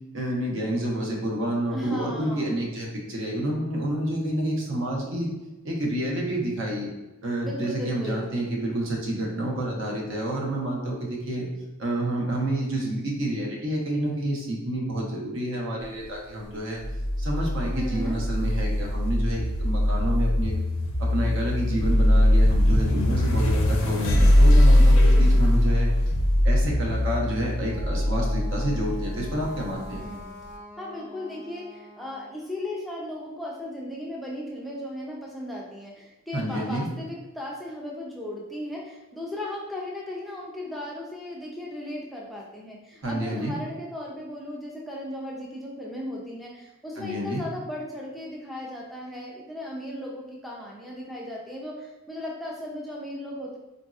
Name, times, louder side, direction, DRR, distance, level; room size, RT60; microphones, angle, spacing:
voice 1, 0.1-5.3 5.6-6.9 7.2-11.5 11.8-16.8 17.2-20.5 21.0-25.9 26.4-30.0 36.3-36.9 43.0-43.5 47.0-47.4, right 1 dB, 65° right, -2 dB, 0.8 m, -29 dB
voice 2, 1.7-2.6 7.4-8.3 17.7-18.2 24.8-25.4 29.9-30.3 30.8-53.6, left 1 dB, ahead, -4 dB, 0.3 m, -36 dB
sound 1, 16.8-30.0, left 1 dB, 70° left, 0.5 m, -21 dB
Wind instrument woodwind instrument, 27.5-32.4, left 1 dB, 40° right, 1.0 m, -46 dB
3.9 x 2.6 x 2.3 m, 1.1 s
head